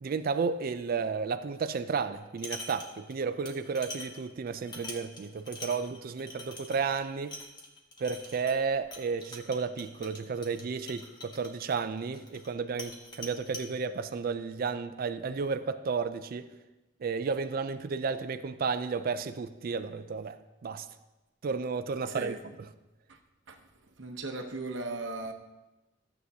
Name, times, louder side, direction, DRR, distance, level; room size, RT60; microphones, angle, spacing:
voice 1, 0.0-7.4 8.0-16.5 17.0-20.4 20.6-20.9 21.4-22.3, right 5 dB, 50° right, 0.4 m, -32 dB
sound 1, 2.1-3.2 3.5-12.5 12.8-13.7, left 1 dB, 25° left, 1.2 m, -45 dB
voice 2, 22.0-22.5 23.1-23.2 23.5-25.3, right 2 dB, 65° right, 0.9 m, -38 dB
14.0 x 7.9 x 2.8 m
head